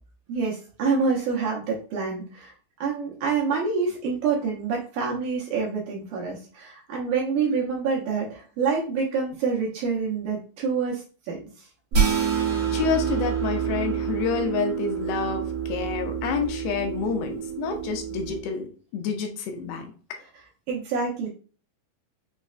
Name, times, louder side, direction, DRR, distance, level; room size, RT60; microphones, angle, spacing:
voice 1, 0.3-2.5 2.8-11.6 20.7-21.3, right 5 dB, 85° right, -3 dB, 1.8 m, -27 dB
sound 1, 11.9-18.4, right 7 dB, 65° right, 1.5 m, -27 dB
voice 2, 12.7-19.9, left 6 dB, 80° left, 5 dB, 2.3 m, -28 dB
6.1 x 2.0 x 2.4 m, 0.39 s
omnidirectional pair, 4.7 m